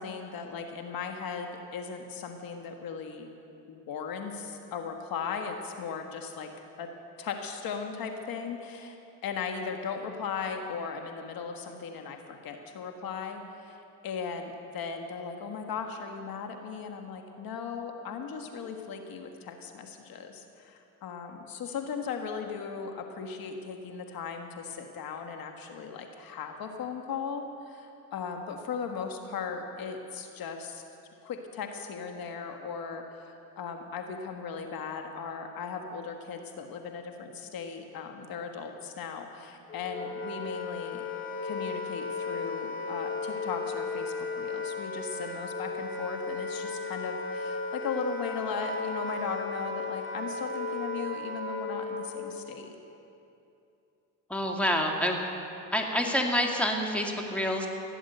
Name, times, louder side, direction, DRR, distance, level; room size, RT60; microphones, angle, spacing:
voice 1, 0.0-3.3 3.7-6.5 6.8-6.9 7.2-8.9 9.2-30.8 31.2-33.0 33.6-41.0 41.4-52.8, left 6 dB, 60° left, 4 dB, 1.6 m, -37 dB
Wind instrument woodwind instrument, 39.7-52.3, left 3 dB, 30° left, 2.0 m, -35 dB
voice 2, 54.3-55.2 55.7-57.7, equal, 5° left, 1 dB, 2.0 m, -27 dB
16.5 x 10.0 x 7.9 m, 2.8 s
cardioid pair, 95°, 39 cm